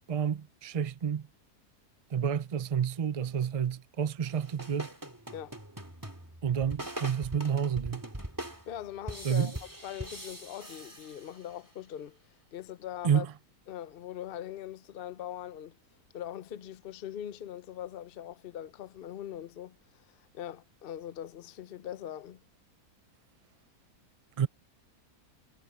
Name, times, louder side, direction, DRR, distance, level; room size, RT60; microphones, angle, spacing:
voice 1, 0.1-1.3 2.1-4.9 6.4-8.0 9.2-9.5 13.0-13.3 24.4-24.5, right 8 dB, 55° right, 0.4 m, -29 dB
sound 1, 4.3-11.7, right 1 dB, 10° right, 2.5 m, -42 dB
voice 2, 8.7-9.6 9.8-12.2 12.5-13.3 13.7-15.8 16.1-22.4, left 11 dB, 50° left, 0.7 m, -41 dB
omnidirectional pair, 1.7 m